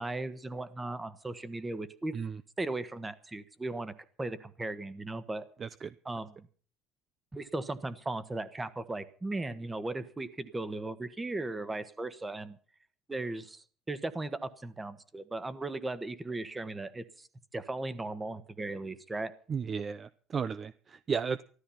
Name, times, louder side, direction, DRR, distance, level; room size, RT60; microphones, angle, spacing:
voice 1, 0.0-2.1 2.6-3.9 4.2-5.5 6.0-6.5 7.3-12.6 13.1-17.3 17.5-19.3, right 2 dB, 15° right, 14 dB, 1.4 m, -37 dB
voice 2, 5.6-5.9 19.5-21.4, right 6 dB, 30° right, 14 dB, 0.6 m, -34 dB
15.0 x 13.5 x 5.7 m, 0.43 s
cardioid pair, 125°, 0 cm